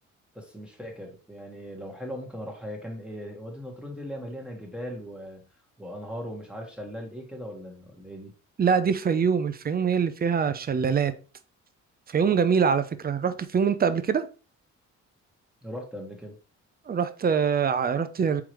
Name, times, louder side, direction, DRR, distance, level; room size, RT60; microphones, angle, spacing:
voice 1, 0.3-5.5 5.8-8.3 15.6-16.4, equal, 5° right, 1.3 m, -39 dB
voice 2, 8.6-11.1 12.1-14.3 16.9-18.4, right 6 dB, 30° right, 0.5 m, -24 dB
4.6 x 3.8 x 3.0 m
cardioid pair, 90°, 30 cm